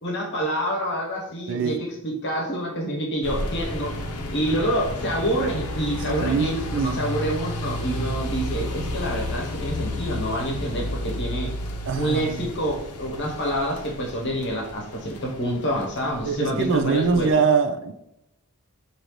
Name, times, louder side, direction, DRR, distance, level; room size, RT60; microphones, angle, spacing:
voice 1, 0.0-3.9 4.3-11.5 12.0-17.3, equal, 50° left, -1 dB, 0.9 m, -27 dB
sound 1, 3.2-17.4, left 1 dB, 85° left, 0.6 m, -32 dB
voice 2, 6.2-7.0 11.9-12.4 16.3-17.9, right 5 dB, 55° right, 7 dB, 0.4 m, -23 dB
5.0 x 2.6 x 3.0 m, 0.81 s
head